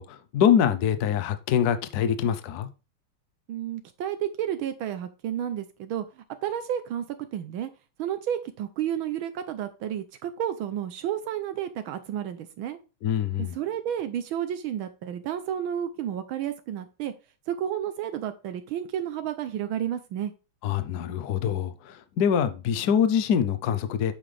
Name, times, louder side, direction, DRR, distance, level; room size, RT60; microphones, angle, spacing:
voice 1, 0.0-2.7 13.0-13.5 20.6-24.1, left 8 dB, 60° left, 1.1 m, -24 dB
voice 2, 3.5-7.1 7.3-7.7 8.0-12.8 13.5-17.1 17.5-20.3, right 10 dB, 75° right, 1.5 m, -31 dB
8.7 x 5.8 x 3.3 m
omnidirectional pair, 2.3 m